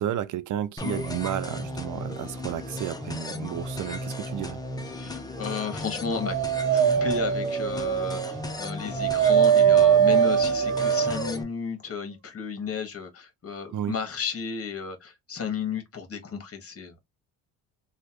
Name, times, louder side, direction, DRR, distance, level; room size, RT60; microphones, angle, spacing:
voice 1, 0.0-4.6 13.7-13.9, right 11 dB, 55° right, 0.6 m, -32 dB
sound 1, 0.8-11.4, left 1 dB, 10° left, 0.8 m, -35 dB
voice 2, 4.9-6.4 6.7-17.0, left 6 dB, 40° left, 1.4 m, -33 dB
Dog, 5.8-11.4, right 8 dB, 85° right, 1.1 m, -22 dB
3.1 x 2.5 x 2.9 m
supercardioid pair, 70°, 36 cm